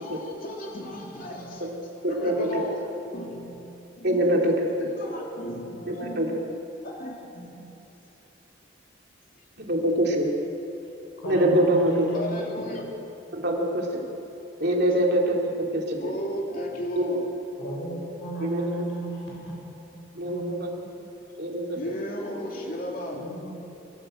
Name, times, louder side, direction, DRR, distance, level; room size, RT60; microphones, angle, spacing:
voice 1, 0.0-1.7 2.1-2.9 3.1-3.6 4.0-4.2 5.0-6.4 6.8-7.7 9.4-9.5 12.1-12.9 16.0-17.3 21.7-23.3, equal, 45° left, -1 dB, 3.0 m, -35 dB
voice 2, 4.0-4.9 5.9-6.4 9.6-10.3 11.3-11.9 13.4-14.0 14.6-15.4 15.7-16.1 17.0-17.1 18.4-18.6 20.1-20.7 21.4-21.9, right 1 dB, 55° right, -1 dB, 3.1 m, -24 dB
voice 3, 11.2-12.7 17.6-20.6 23.1-23.6, right 1 dB, 85° left, -2 dB, 6.7 m, -35 dB
25.0 x 13.5 x 7.9 m, 3.0 s
head